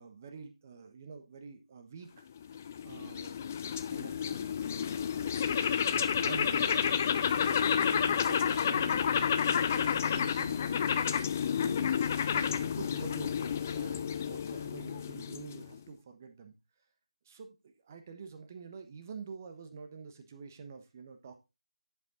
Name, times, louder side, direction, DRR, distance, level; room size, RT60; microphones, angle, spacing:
voice 1, 0.0-2.2 2.8-6.9 7.3-10.8 11.5-11.9 12.2-16.5 17.2-21.4, right 5 dB, 25° right, 7 dB, 1.0 m, -47 dB
sound 1, 2.4-15.8, left 8 dB, 20° left, 0.4 m, -30 dB
10.5 x 5.3 x 3.7 m, 0.26 s
figure-of-eight pair, 160°, 4 cm